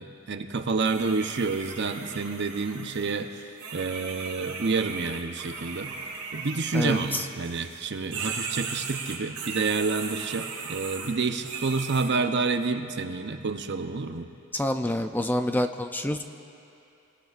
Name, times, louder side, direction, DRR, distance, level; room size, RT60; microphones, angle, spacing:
voice 1, 0.0-5.9 6.3-14.3, right 4 dB, 55° right, 7 dB, 0.8 m, -29 dB
sound 1, 0.8-7.8 8.1-12.1, right 5 dB, 90° right, 2.4 m, -37 dB
voice 2, 6.7-7.3 14.5-16.2, left 1 dB, 10° left, 7 dB, 0.4 m, -27 dB
25.5 x 18.5 x 2.5 m, 2.7 s
head